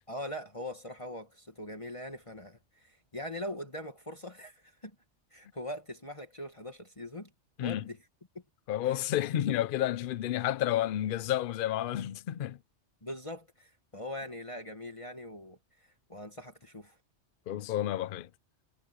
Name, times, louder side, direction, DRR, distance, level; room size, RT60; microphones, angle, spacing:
voice 1, 0.1-5.0 5.3-7.3 7.6-8.0 13.0-17.0, left 1 dB, 25° left, 2.0 m, -42 dB
voice 2, 8.7-12.6 17.5-18.3, left 12 dB, 55° left, 0.7 m, -30 dB
omnidirectional pair, 1.2 m